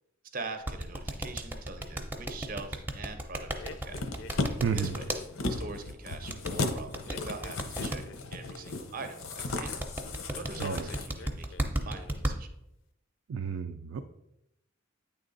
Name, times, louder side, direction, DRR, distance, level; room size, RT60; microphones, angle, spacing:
voice 1, 0.3-4.0 4.7-5.1 5.5-8.1 8.3-9.8 10.3-12.5, right 3 dB, 45° right, 8 dB, 0.6 m, -42 dB
sound 1, 0.7-5.2 6.3-8.0 9.5-12.3, right 1 dB, 10° right, 0.5 m, -33 dB
sound 2, 3.6-5.4 7.0-8.9 10.5-11.6 11.9-12.4, left 4 dB, 65° left, 0.4 m, -49 dB
sound 3, 3.9-11.1 11.4-11.5, left 3 dB, 90° left, 0.8 m, -35 dB
voice 2, 4.6-4.9 10.6-10.9 13.3-14.0, right 6 dB, 80° right, 6 dB, 0.4 m, -31 dB
8.9 x 3.5 x 3.9 m, 0.81 s
head